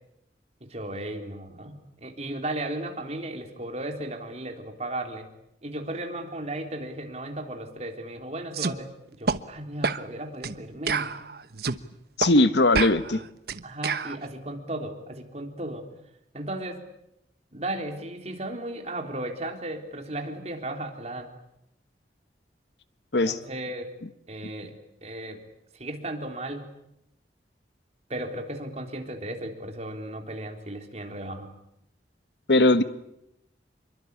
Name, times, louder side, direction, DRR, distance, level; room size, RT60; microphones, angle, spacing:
voice 1, 0.6-5.3 5.6-8.9 9.2-11.1 13.6-15.9 16.3-16.9 17.5-21.3 23.2-23.9 24.3-24.8 25.0-25.4 25.7-26.7 28.1-31.5, right 1 dB, 40° right, 4 dB, 3.9 m, -35 dB
sound 1, 8.5-8.8 9.3-9.4 9.8-10.0 10.4-10.6 10.9-11.8 12.2-12.3 12.7-14.2, right 4 dB, 60° right, 1.2 m, -28 dB
voice 2, 12.2-13.2 23.1-23.4 32.5-32.8, left 2 dB, 75° left, 12 dB, 1.3 m, -19 dB
27.0 x 23.5 x 8.6 m, 0.81 s
head